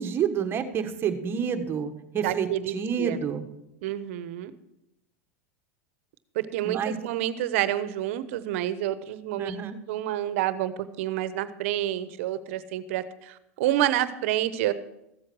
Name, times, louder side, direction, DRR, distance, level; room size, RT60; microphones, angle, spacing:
voice 1, 0.0-3.4 6.6-6.9 9.4-9.8, right 7 dB, 30° right, 7 dB, 1.5 m, -29 dB
voice 2, 2.2-3.2 3.8-4.5 6.3-9.6 9.9-14.7, right 13 dB, 70° right, 14 dB, 1.0 m, -28 dB
14.5 x 7.8 x 6.3 m, 0.86 s
supercardioid pair, 115°, 7 cm